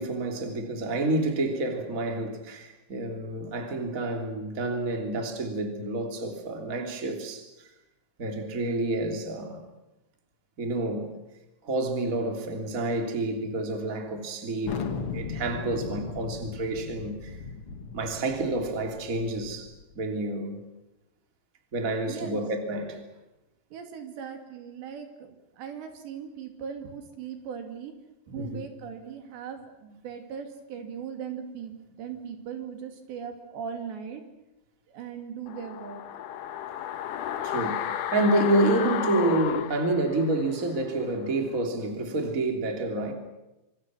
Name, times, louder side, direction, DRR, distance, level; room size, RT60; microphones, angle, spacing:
voice 1, 0.0-7.5 8.2-9.6 10.6-11.1 11.6-14.8 15.1-17.4 17.9-20.6 21.7-23.0 28.4-28.6 37.4-43.1, right 2 dB, 20° right, 3.0 m, -29 dB
Thunder, 14.6-19.8, left 5 dB, 45° left, 2.1 m, -37 dB
voice 2, 22.1-22.4 23.7-27.9 28.3-34.2 34.9-36.0, right 7 dB, 75° right, 4.7 m, -39 dB
sound 1, 35.5-40.6 40.9-41.0, left 10 dB, 70° left, 2.0 m, -32 dB
26.0 x 26.0 x 6.4 m
omnidirectional pair, 5.1 m